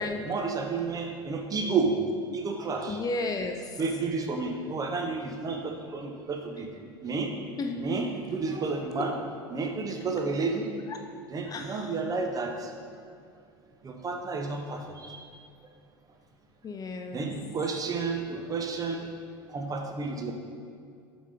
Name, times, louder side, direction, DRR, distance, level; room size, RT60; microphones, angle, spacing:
voice 1, 0.0-2.0 2.3-3.0 3.8-6.7 7.0-7.3 7.7-9.2 9.5-10.7 11.3-12.5 13.8-15.2 17.1-19.0 19.5-20.3, right 4 dB, 30° right, 3 dB, 0.9 m, -31 dB
voice 2, 2.9-3.6 7.6-8.1 10.9-11.0 11.5-11.9 16.6-17.3, left 3 dB, 30° left, 5 dB, 0.5 m, -33 dB
7.4 x 4.1 x 4.9 m, 2.4 s
figure-of-eight pair, 70°, 13 cm